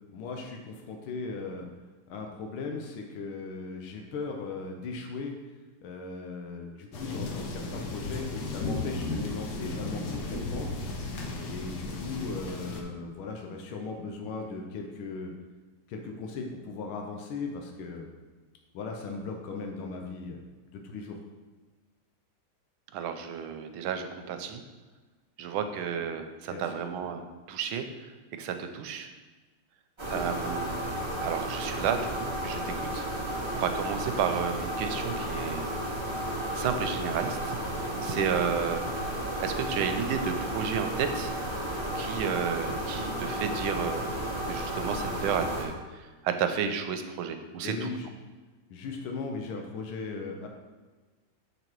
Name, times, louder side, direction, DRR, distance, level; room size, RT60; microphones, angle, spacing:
voice 1, 0.1-1.7 2.1-5.3 5.8-11.1 11.4-15.3 15.9-18.1 18.7-20.4 20.7-21.1 26.5-26.7 30.1-30.2 38.1-38.3 47.6-48.1 48.7-50.5, left 4 dB, 85° left, 2 dB, 1.6 m, -38 dB
sound 1, 6.9-12.8, left 2 dB, 60° left, 1.3 m, -35 dB
voice 2, 22.9-24.6 25.4-27.9 28.4-29.1 30.1-30.7 31.2-32.6 32.9-33.0 33.5-35.7 36.5-37.6 38.0-38.8 39.4-41.3 41.9-44.2 44.5-45.7 46.2-47.9, right 7 dB, 90° right, 7 dB, 1.4 m, -32 dB
sound 2, 30.0-45.6, right 1 dB, 25° right, 0.6 m, -33 dB
7.9 x 4.1 x 4.5 m, 1.3 s
omnidirectional pair, 2.2 m